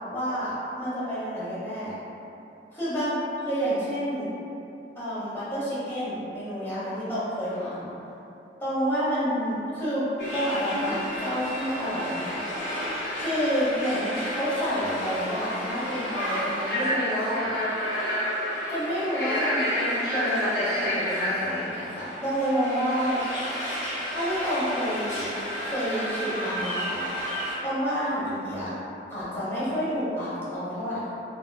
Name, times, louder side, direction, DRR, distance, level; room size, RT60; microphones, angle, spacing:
voice 1, 0.1-2.0 2.7-3.2 3.4-4.3 4.9-7.9 8.6-12.4 13.1-17.5 18.7-23.2 24.1-25.3 25.6-27.1 27.6-28.8 29.1-31.1, equal, 15° left, -11 dB, 0.8 m, -29 dB
sound 1, 10.2-27.5, equal, 65° left, 1.2 m, -30 dB
3.6 x 2.4 x 2.2 m, 2.9 s
head